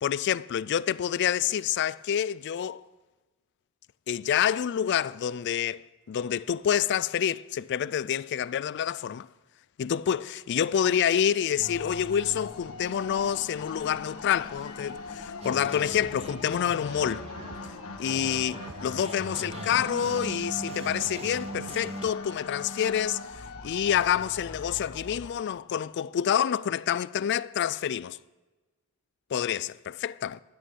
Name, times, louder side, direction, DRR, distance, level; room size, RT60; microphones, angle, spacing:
voice 1, 0.0-2.8 4.1-9.3 9.8-17.2 18.0-23.2 23.6-28.2 29.3-30.4, left 9 dB, 55° left, 0.3 m, -27 dB
sound 1, 11.6-25.3, left 3 dB, 90° left, 1.5 m, -41 dB
sound 2, 15.4-22.1, right 3 dB, 30° right, 0.5 m, -41 dB
12.5 x 9.1 x 6.3 m
head